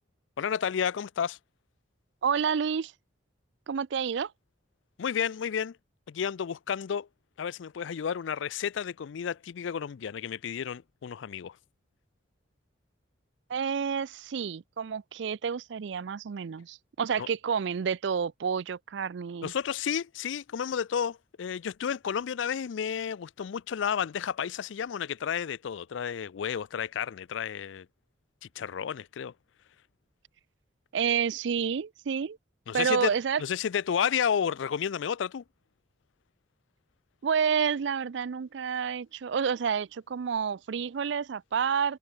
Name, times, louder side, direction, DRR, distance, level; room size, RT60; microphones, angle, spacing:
voice 1, 0.4-1.4 5.0-5.8 6.1-7.1 7.4-11.6 17.2-17.3 19.4-27.9 28.4-29.3 32.7-33.1 33.4-35.4, left 7 dB, 70° left, 0.4 m, -31 dB
voice 2, 2.2-2.9 3.7-4.3 13.5-19.5 30.9-32.4 32.7-33.4 37.2-42.0, right 7 dB, 65° right, 0.4 m, -29 dB
head